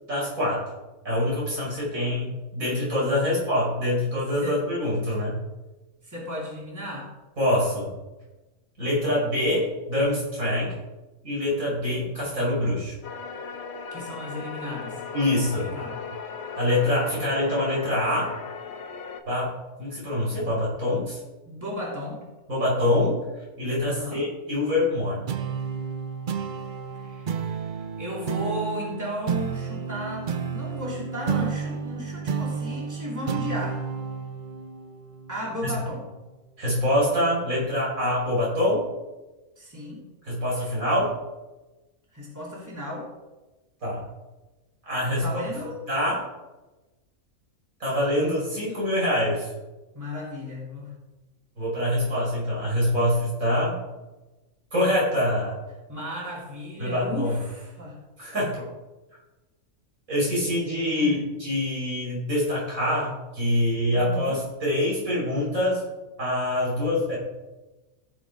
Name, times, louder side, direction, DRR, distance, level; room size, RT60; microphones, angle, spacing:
voice 1, 0.1-0.6 1.1-5.4 7.4-7.9 8.8-10.7 11.2-13.0 15.1-15.7 16.6-18.3 19.3-19.5 19.8-21.2 22.5-23.2 23.6-25.3 35.6-35.7 36.6-38.9 40.3-41.1 43.8-44.0 44.9-45.2 45.9-46.3 47.8-49.5 51.6-53.8 54.7-55.6 56.8-57.4 58.2-58.6 60.1-65.8 66.2-67.2, left 1 dB, 70° right, -6 dB, 5.3 m, -25 dB
voice 2, 6.0-7.1 9.0-9.3 13.9-15.3 15.8-16.0 21.4-22.2 23.9-24.3 26.9-33.8 35.3-36.0 39.6-40.1 40.5-40.7 42.1-43.1 45.2-45.8 49.9-50.9 55.9-58.0 60.8-61.2 63.9-64.4, left 1 dB, 10° right, -5 dB, 3.2 m, -35 dB
sound 1, 13.0-19.2, left 5 dB, 55° left, 1.1 m, -37 dB
sound 2, 25.3-36.1, right 6 dB, 45° right, 0.7 m, -31 dB
16.0 x 6.0 x 5.1 m, 1.1 s
omnidirectional pair, 1.5 m